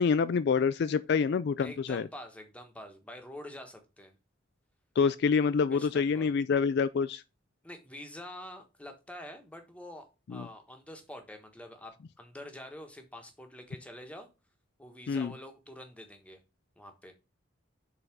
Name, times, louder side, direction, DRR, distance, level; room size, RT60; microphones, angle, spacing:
voice 1, 0.0-2.1 5.0-7.2 10.3-10.5 15.1-15.3, left 5 dB, 55° left, 0.3 m, -27 dB
voice 2, 1.6-4.2 5.7-6.3 7.6-14.3 14.8-16.4 16.8-17.1, left 1 dB, 5° left, 1.2 m, -46 dB
5.5 x 4.0 x 5.9 m
head